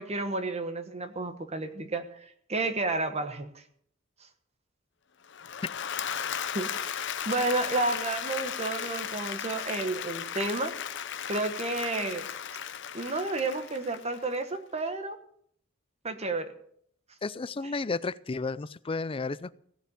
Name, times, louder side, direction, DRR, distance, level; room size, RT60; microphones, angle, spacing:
voice 1, 0.0-2.2 2.5-3.6 6.5-10.7 11.3-12.3 12.9-15.2 16.0-16.5, right 2 dB, 30° right, 1.2 m, -31 dB
Applause / Crowd, 5.3-14.4, left 8 dB, 65° left, 0.9 m, -36 dB
voice 2, 17.2-19.5, left 3 dB, 25° left, 0.5 m, -32 dB
17.0 x 6.9 x 9.1 m
head